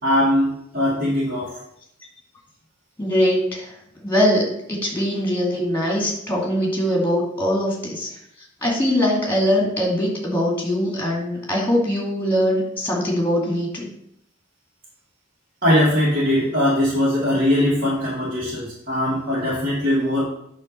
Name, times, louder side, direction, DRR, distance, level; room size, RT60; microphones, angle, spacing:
voice 1, 0.0-1.5 15.6-20.2, left 1 dB, 45° right, -9 dB, 2.5 m, -20 dB
voice 2, 3.0-3.7 4.0-8.1 8.6-13.9, equal, 10° left, -1 dB, 2.2 m, -22 dB
9.4 x 3.6 x 6.5 m, 0.75 s
head